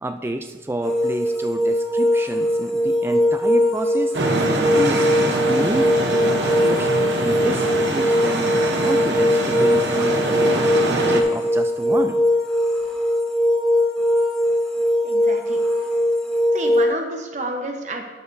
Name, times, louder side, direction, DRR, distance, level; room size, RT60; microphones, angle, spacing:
voice 1, 0.0-4.2 4.7-5.1 5.5-5.9 6.2-12.2, right 1 dB, 15° right, 6 dB, 0.3 m, -29 dB
sound 1, 0.8-16.9, equal, 5° left, 1.4 m, -20 dB
sound 2, 4.1-11.2, right 1 dB, 80° right, 1.0 m, -24 dB
voice 2, 15.0-15.6 16.5-18.0, right 2 dB, 40° right, 3 dB, 1.0 m, -30 dB
12.0 x 6.7 x 2.7 m, 1.3 s
head